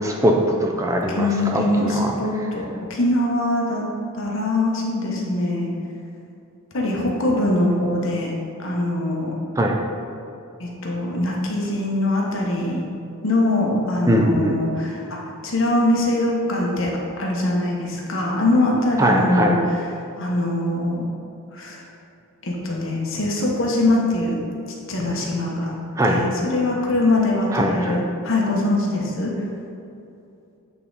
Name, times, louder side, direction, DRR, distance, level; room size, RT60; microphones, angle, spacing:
voice 1, 0.0-2.1 9.6-9.8 14.1-14.6 19.0-19.6 26.0-26.2 27.5-28.0, right 1 dB, 15° right, 1 dB, 0.3 m, -21 dB
voice 2, 1.1-3.8 4.2-5.7 6.7-8.3 8.6-9.4 10.6-12.8 13.2-15.2 15.4-16.9 17.2-19.8 20.2-21.0 21.5-21.8 22.4-24.4 24.9-25.7 26.0-29.3, left 1 dB, 60° left, -2 dB, 1.0 m, -22 dB
8.3 x 3.5 x 3.9 m, 2.6 s
head